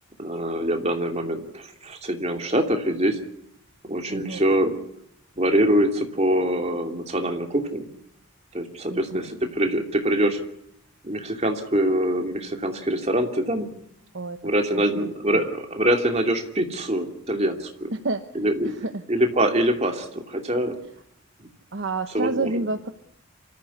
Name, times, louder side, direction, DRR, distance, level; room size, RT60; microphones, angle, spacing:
voice 1, 0.2-3.2 3.9-4.7 5.4-7.9 8.5-10.4 11.0-13.7 14.4-17.9 18.3-18.7 19.1-20.8 22.1-22.6, right 1 dB, 30° right, 4 dB, 2.8 m, -24 dB
voice 2, 4.1-4.4 8.9-9.3 14.1-14.4 14.7-15.4 17.9-18.2 18.6-19.0 21.7-22.9, right 3 dB, 55° right, 8 dB, 1.0 m, -29 dB
26.0 x 14.5 x 9.7 m, 0.78 s
head